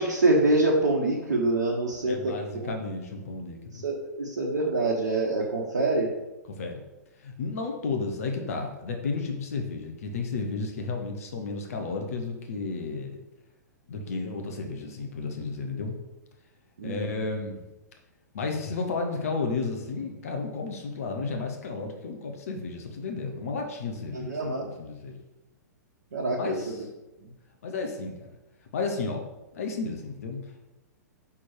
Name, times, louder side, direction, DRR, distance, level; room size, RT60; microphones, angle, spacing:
voice 1, 0.0-2.7 3.7-6.1 16.8-17.1 24.1-24.7 26.1-26.6, right 2 dB, 65° right, -3 dB, 1.0 m, -25 dB
voice 2, 2.1-3.8 6.5-6.8 7.2-13.2 13.9-16.0 16.8-17.7 18.3-25.2 26.3-26.9 27.6-28.3 28.7-29.2 29.5-30.6, left 4 dB, 55° left, 3 dB, 1.0 m, -33 dB
6.3 x 3.7 x 4.6 m, 1.0 s
figure-of-eight pair, 110°, 10 cm